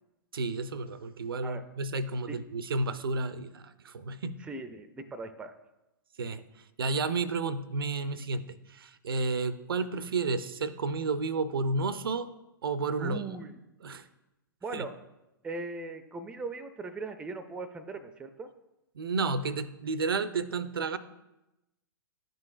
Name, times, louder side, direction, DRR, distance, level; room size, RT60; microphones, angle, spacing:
voice 1, 0.3-4.4 6.2-6.4 6.8-12.3 12.6-13.2 13.8-14.1 14.7-14.8 19.0-21.0, right 3 dB, 80° right, 13 dB, 0.4 m, -31 dB
voice 2, 4.4-5.5 13.0-13.5 14.6-14.9 15.4-18.5, right 3 dB, 10° right, 9 dB, 0.3 m, -39 dB
10.5 x 3.8 x 2.4 m, 0.95 s
figure-of-eight pair, 110°, 12 cm